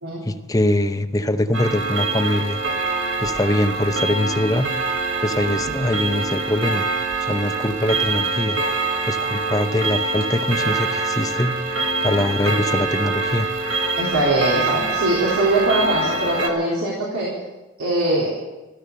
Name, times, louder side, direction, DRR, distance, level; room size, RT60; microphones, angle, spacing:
voice 1, 0.2-2.6 3.2-4.7 5.2-6.9 7.2-8.6 9.0-11.5 12.0-13.5, left 1 dB, 15° left, 9 dB, 0.6 m, -22 dB
Clock, 1.5-16.5, right 3 dB, 55° right, 1.6 m, -24 dB
voice 2, 14.0-17.3 17.8-18.3, right 1 dB, 80° right, -5 dB, 3.6 m, -21 dB
14.0 x 13.5 x 6.7 m, 1.1 s
head